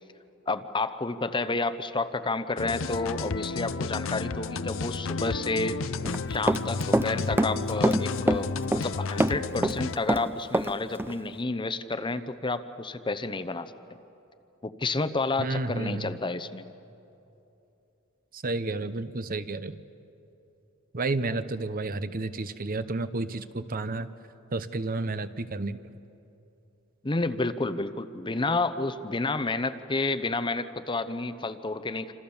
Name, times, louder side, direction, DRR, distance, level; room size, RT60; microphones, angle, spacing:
voice 1, 0.5-5.8 6.3-13.7 14.6-16.6 27.0-32.1, left 3 dB, 25° left, 12 dB, 0.8 m, -30 dB
sound 1, 2.6-10.0, left 4 dB, 65° left, 0.6 m, -32 dB
Run, 6.0-7.1 7.4-8.9 9.2-10.7 11.0-11.1, right 1 dB, 10° right, 0.5 m, -25 dB
voice 2, 15.4-16.2 18.3-19.8 20.9-24.1 24.5-25.8, right 2 dB, 45° right, 12 dB, 0.8 m, -31 dB
27.5 x 26.5 x 7.1 m, 2.8 s
head